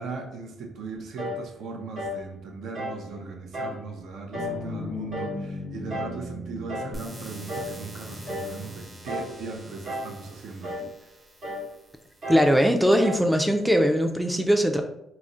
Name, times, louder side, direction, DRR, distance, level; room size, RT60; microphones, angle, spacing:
voice 1, 0.0-11.1, right 4 dB, 70° right, 3 dB, 0.5 m, -38 dB
sound 1, 1.2-1.5 1.9-2.2 2.7-3.0 3.5-3.8 4.3-4.6 5.1-5.4 5.9-6.2 6.7-7.0 7.5-7.8 8.3-8.6 9.1-9.4 9.8-10.2 10.6-10.9 11.4-11.7 12.2-12.5 13.0-13.3, left 1 dB, 55° right, 0.9 m, -33 dB
sound 2, 4.3-10.1, left 2 dB, 75° left, 0.4 m, -39 dB
sound 3, 6.9-12.9, right 1 dB, 20° right, 0.7 m, -47 dB
voice 2, 12.3-14.8, equal, ahead, 4 dB, 0.3 m, -20 dB
2.4 x 2.0 x 3.8 m, 0.83 s
cardioid pair, 90°, 0 cm